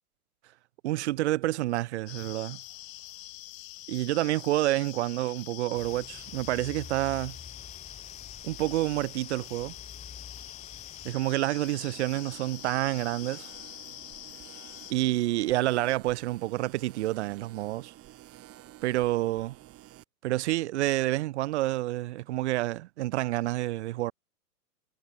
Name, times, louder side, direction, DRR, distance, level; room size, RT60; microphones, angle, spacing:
voice 1, 0.8-2.6 3.9-7.4 8.4-9.7 11.0-13.5 14.9-17.9 18.8-19.5 20.2-24.1, right 16 dB, 50° right, 0.5 m, -28 dB
sound 1, 2.1-14.9, left 16 dB, 55° left, 1.4 m, -45 dB
sound 2, 5.7-11.1, left 6 dB, 15° left, 6.5 m, -48 dB
sound 3, 11.3-20.0, right 15 dB, 30° right, 6.0 m, -51 dB
hypercardioid pair, 120°, 46 cm